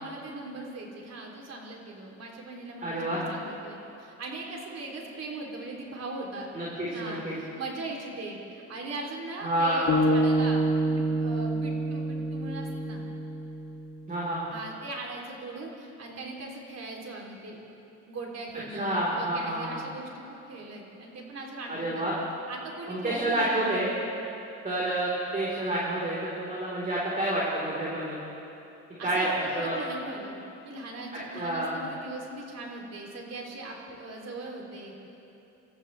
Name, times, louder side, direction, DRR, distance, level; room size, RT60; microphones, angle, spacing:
voice 1, 0.0-6.5 6.8-13.0 14.5-17.6 18.1-22.1 22.5-23.7 29.0-35.1, right 2 dB, 55° right, -1 dB, 3.4 m, -39 dB
voice 2, 2.8-3.2 6.5-7.3 9.4-9.9 14.1-14.4 18.7-19.8 21.7-22.1 22.9-23.9 24.6-28.2 29.0-29.8 31.3-31.8, right 1 dB, 30° right, -6 dB, 4.2 m, -29 dB
sound 1, 9.9-14.2, right 1 dB, 75° left, 2.3 m, -27 dB
27.0 x 14.5 x 3.4 m, 2.9 s
cardioid pair, 90°, 30 cm